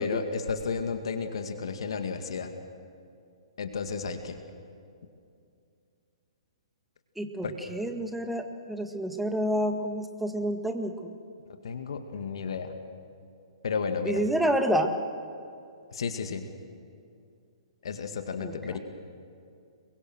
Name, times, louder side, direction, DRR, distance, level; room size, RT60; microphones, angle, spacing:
voice 1, 0.0-2.5 3.6-4.4 7.4-7.5 11.6-12.8 13.6-14.2 15.9-16.5 17.8-18.8, left 5 dB, 65° left, 6 dB, 2.1 m, -32 dB
voice 2, 7.2-11.2 14.1-14.9 18.4-18.8, equal, 5° right, 5 dB, 1.9 m, -29 dB
28.5 x 22.5 x 6.3 m, 2.5 s
figure-of-eight pair, 125°, 3 cm